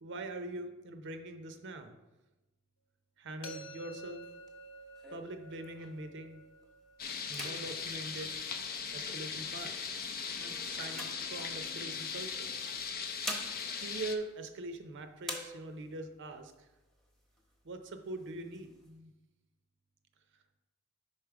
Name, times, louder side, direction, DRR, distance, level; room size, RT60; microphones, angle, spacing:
voice 1, 0.0-1.9 3.2-4.2 5.1-6.4 7.3-8.3 8.9-9.7 10.4-12.5 13.8-16.5 17.6-19.1, right 2 dB, 55° right, 7 dB, 0.6 m, -43 dB
sound 1, 3.4-9.3, right 1 dB, 70° left, 1.0 m, -52 dB
sound 2, 4.0-6.2 6.6-6.9 7.2-9.1 9.8-11.9 12.8-14.9 15.2-16.1 16.5-16.6 16.9-17.5 18.0-18.9, equal, ahead, 0.9 m, -46 dB
sound 3, 7.0-14.2, left 6 dB, 45° left, 0.5 m, -39 dB
5.4 x 4.9 x 4.6 m, 1.1 s
head